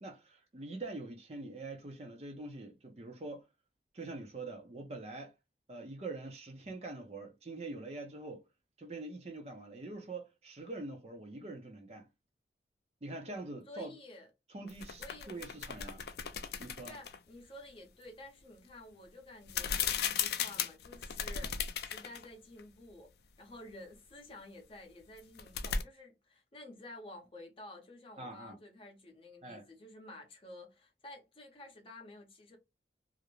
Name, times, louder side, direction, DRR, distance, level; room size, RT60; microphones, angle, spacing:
voice 1, 0.0-3.5 3.9-5.3 5.7-8.4 8.8-12.1 13.0-13.9 14.5-16.0 16.6-17.0 28.2-28.6 29.4-29.6, right 2 dB, 35° right, 0.5 m, -44 dB
voice 2, 13.7-14.3 15.0-15.5 16.8-23.1 23.4-32.6, left 2 dB, 30° left, 0.6 m, -52 dB
sound 1, 14.7-17.2 19.5-22.3 22.6-22.7 25.2-25.8, left 7 dB, 65° left, 0.3 m, -36 dB
2.4 x 2.0 x 3.0 m
head